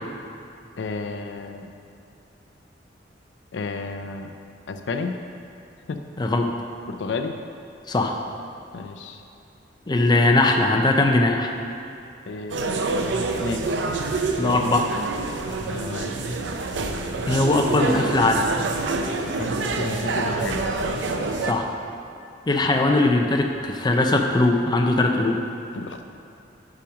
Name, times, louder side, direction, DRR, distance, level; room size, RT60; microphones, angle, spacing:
voice 1, 0.8-1.8 3.5-4.3 4.7-5.2 5.9-6.0 6.9-7.3 8.7-9.2 12.3-12.9 13.4-13.6 15.7-16.2 19.3-20.6 25.7-26.0, left 4 dB, 80° left, 6 dB, 0.5 m, -32 dB
voice 2, 6.2-6.5 7.9-8.2 9.9-11.5 14.4-14.9 17.3-18.5 21.4-21.7 22.5-25.4, left 2 dB, 25° left, 3 dB, 0.5 m, -20 dB
sound 1, 12.5-21.5, right 3 dB, 85° right, 0.5 m, -27 dB
5.7 x 5.0 x 6.2 m, 2.7 s
head